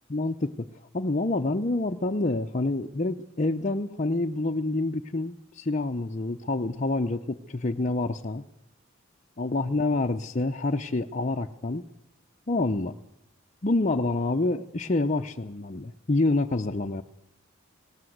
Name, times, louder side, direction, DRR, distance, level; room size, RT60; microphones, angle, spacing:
voice 1, 0.1-0.7 0.9-8.4 9.4-11.8 12.5-13.0 13.6-17.0, left 2 dB, 35° left, 3 dB, 0.7 m, -27 dB
19.0 x 18.0 x 8.0 m, 0.80 s
head